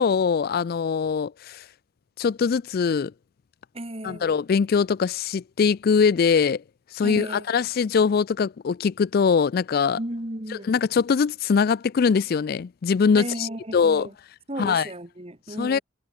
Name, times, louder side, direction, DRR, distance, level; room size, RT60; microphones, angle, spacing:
voice 1, 0.0-1.7 2.2-3.1 4.0-6.6 6.9-10.0 10.5-14.1 14.6-14.9 15.6-15.8, left 6 dB, 50° left, 0.4 m, -22 dB
voice 2, 3.7-4.3 7.0-7.5 10.0-10.7 13.2-14.1 14.5-15.8, right 1 dB, 30° right, 2.6 m, -34 dB
head